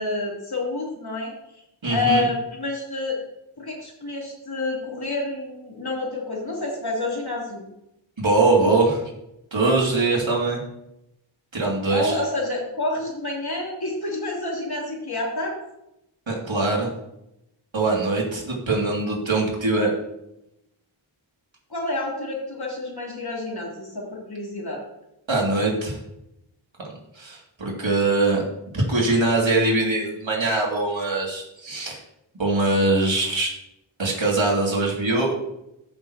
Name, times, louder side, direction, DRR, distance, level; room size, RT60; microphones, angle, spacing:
voice 1, 0.0-1.3 1.9-3.2 3.6-7.7 11.9-15.6 21.7-24.8, left 2 dB, 50° left, -3 dB, 3.6 m, -28 dB
voice 2, 1.8-2.3 8.2-9.0 9.5-10.6 11.5-12.1 16.3-16.9 17.7-19.9 25.3-26.0 27.1-28.4 28.7-32.0 32.4-33.5 34.0-35.3, right 2 dB, 70° right, -3 dB, 3.0 m, -22 dB
14.0 x 6.7 x 3.1 m, 0.84 s
wide cardioid pair, 50°, 48 cm